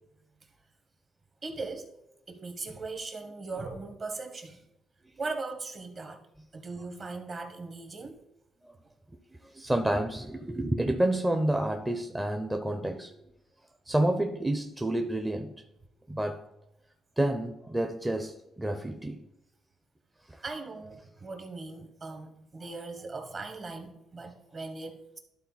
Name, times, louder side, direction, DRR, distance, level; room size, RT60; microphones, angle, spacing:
voice 1, 1.4-1.9 2.3-4.6 5.2-6.2 6.5-8.2 20.4-25.2, right 3 dB, 40° right, 6 dB, 1.4 m, -39 dB
voice 2, 9.5-13.1 13.9-15.5 16.1-16.4 17.2-19.2 20.3-20.4, right 1 dB, 10° right, 5 dB, 0.6 m, -29 dB
11.5 x 3.9 x 4.1 m, 0.86 s
cardioid pair, 90°, 0 cm